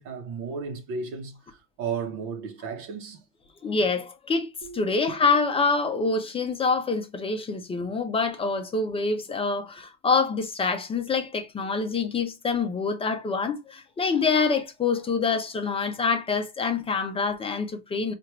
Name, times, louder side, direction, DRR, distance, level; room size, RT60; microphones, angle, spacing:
voice 1, 0.0-3.2, right 5 dB, 75° right, 0.9 m, -34 dB
voice 2, 3.6-4.5 4.7-18.1, left 4 dB, 15° left, 0.5 m, -26 dB
sound 1, 4.6-6.3, right 5 dB, 40° right, 0.9 m, -48 dB
4.6 x 2.5 x 3.0 m
cardioid pair, 145°, 35 cm